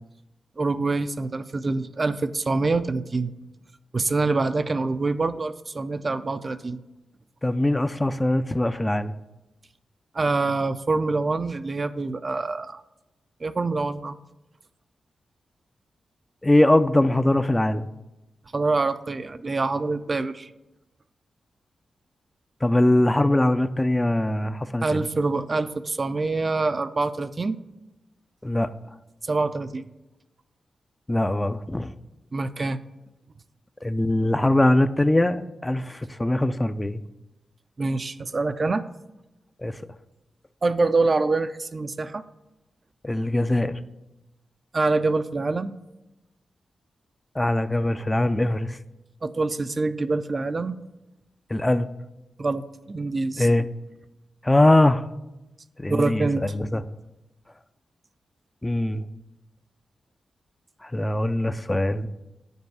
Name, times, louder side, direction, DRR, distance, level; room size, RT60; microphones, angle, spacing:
voice 1, 0.6-3.3 3.9-6.8 10.1-12.8 13.4-14.2 18.5-20.5 24.8-27.6 29.2-29.9 32.3-32.8 37.8-38.8 40.6-42.2 44.7-45.7 49.2-50.8 52.4-53.5 55.9-56.4, right 3 dB, 45° right, 11 dB, 0.4 m, -25 dB
voice 2, 7.4-9.1 16.4-17.9 22.6-25.0 28.4-28.7 31.1-31.9 33.8-37.0 39.6-39.7 43.0-43.8 47.4-48.8 51.5-51.9 53.4-53.6 54.4-55.0 55.8-56.8 58.6-59.0 60.8-62.1, left 1 dB, 20° left, 12 dB, 0.4 m, -22 dB
5.3 x 4.6 x 6.1 m, 0.96 s
supercardioid pair, 40°, 0 cm